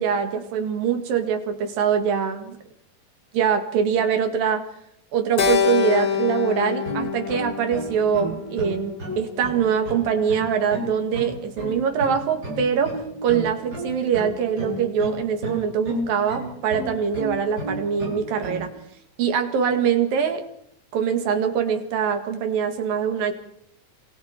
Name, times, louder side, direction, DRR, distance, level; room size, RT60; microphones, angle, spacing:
voice 1, 0.0-2.6 3.3-4.7 5.1-18.7 19.2-20.4 20.9-23.3, right 7 dB, 80° right, 6 dB, 3.8 m, -23 dB
Keyboard (musical), 5.4-9.8, left 7 dB, 90° left, 0.8 m, -26 dB
sound 1, 6.9-18.7, right 1 dB, 25° right, 6.4 m, -32 dB
27.0 x 27.0 x 4.5 m, 0.74 s
omnidirectional pair, 4.0 m